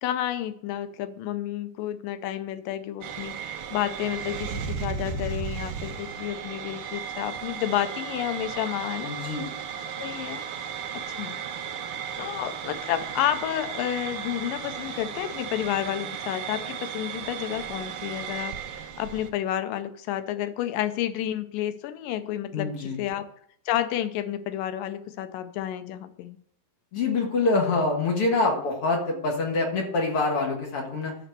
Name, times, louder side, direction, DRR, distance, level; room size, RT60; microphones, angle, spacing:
voice 1, 0.0-9.1 10.0-10.5 10.9-11.4 12.2-23.3 23.7-26.4, left 12 dB, 85° left, 10 dB, 2.3 m, -30 dB
sound 1, 3.0-19.3, right 7 dB, 85° right, 1.2 m, -35 dB
voice 2, 9.0-9.6 22.5-23.0 26.9-31.2, left 3 dB, 50° left, 0 dB, 2.3 m, -25 dB
12.5 x 4.3 x 6.7 m, 0.66 s
omnidirectional pair, 3.9 m